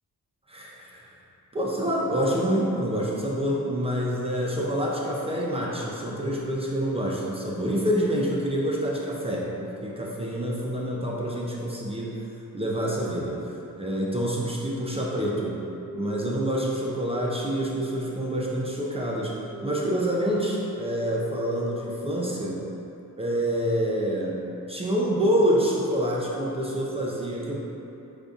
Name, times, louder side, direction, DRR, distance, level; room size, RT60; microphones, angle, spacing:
voice 1, 0.5-1.1 1.5-12.3 12.5-13.4 13.8-15.6 15.9-19.3 19.6-22.6 23.2-27.6, equal, 20° right, -4 dB, 0.3 m, -27 dB
sound 1, 15.7-22.9, equal, 65° left, 0.9 m, -40 dB
4.8 x 2.6 x 2.3 m, 2.9 s
cardioid pair, 105°, 35 cm